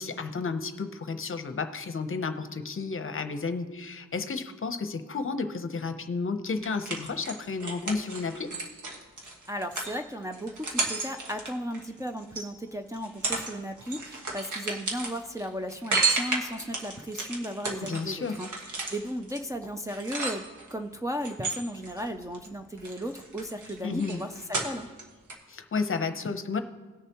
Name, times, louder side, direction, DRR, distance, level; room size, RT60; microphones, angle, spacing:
voice 1, 0.0-8.5 17.8-18.4 23.8-24.2 25.5-26.6, left 4 dB, 45° left, 8 dB, 0.8 m, -32 dB
sound 1, 6.6-12.5 12.9-13.5 13.8-20.7 21.2-22.5 22.8-25.0 25.3-25.4, right 3 dB, 90° right, 1.6 m, -33 dB
voice 2, 9.5-20.4 20.7-24.9, equal, 10° right, 3 dB, 0.5 m, -35 dB
18.5 x 6.7 x 3.0 m, 1.3 s
wide cardioid pair, 110°, 29 cm